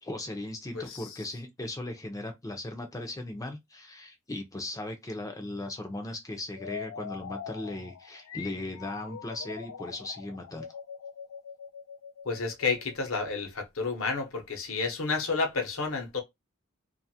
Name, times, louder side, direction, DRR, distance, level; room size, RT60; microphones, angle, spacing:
voice 1, 0.0-10.7, left 1 dB, 15° left, 0.5 m, -38 dB
voice 2, 0.7-1.1 12.2-16.2, left 4 dB, 70° left, 0.9 m, -30 dB
sound 1, 6.5-13.2, left 7 dB, 90° left, 0.4 m, -43 dB
2.5 x 2.4 x 2.7 m
head